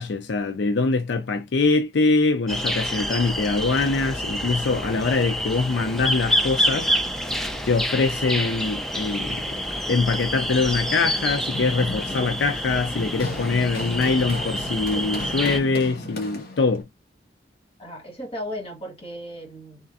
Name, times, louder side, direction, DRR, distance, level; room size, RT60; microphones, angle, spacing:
voice 1, 0.0-6.9 7.7-9.5 9.9-16.8, left 3 dB, 80° left, 0.5 m, -23 dB
sound 1, 2.5-15.6, equal, ahead, 0.5 m, -28 dB
Run, 10.4-16.8, left 1 dB, 55° left, 1.5 m, -35 dB
voice 2, 17.8-19.9, equal, 35° left, 2.1 m, -36 dB
3.7 x 3.3 x 2.5 m
head